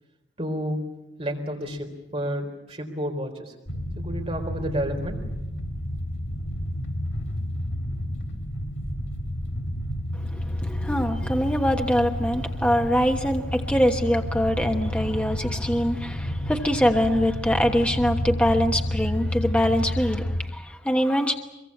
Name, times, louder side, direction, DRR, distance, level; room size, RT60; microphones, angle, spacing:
voice 1, 0.4-0.8 1.2-3.5 4.0-5.2, equal, 30° right, 2 dB, 4.1 m, -30 dB
sound 1, 3.7-20.4, equal, 80° left, 2.8 m, -30 dB
voice 2, 10.1-21.3, equal, 5° left, 3 dB, 1.2 m, -24 dB
24.0 x 23.5 x 8.6 m, 0.93 s
head